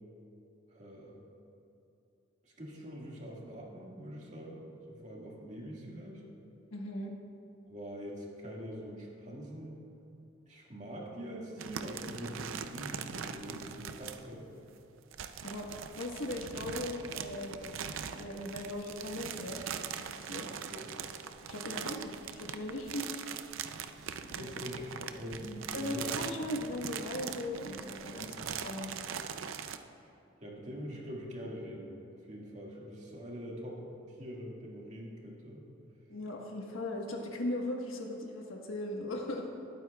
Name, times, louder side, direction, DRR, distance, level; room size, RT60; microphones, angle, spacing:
voice 1, 0.7-1.2 2.4-6.2 7.7-9.8 10.5-14.5 20.7-21.0 23.9-26.1 28.2-28.5 30.0-30.1 30.4-35.6, equal, 35° right, -3 dB, 1.8 m, -44 dB
voice 2, 6.7-7.1 15.4-15.7 16.0-17.8 18.2-19.6 20.0-20.5 21.5-23.0 24.3-24.4 25.7-29.0 36.1-39.5, left 1 dB, 75° left, 0 dB, 1.4 m, -38 dB
sound 1, 11.6-14.3 15.0-29.8, right 7 dB, 75° right, 0.5 m, -41 dB
19.5 x 9.1 x 2.3 m, 2.8 s
head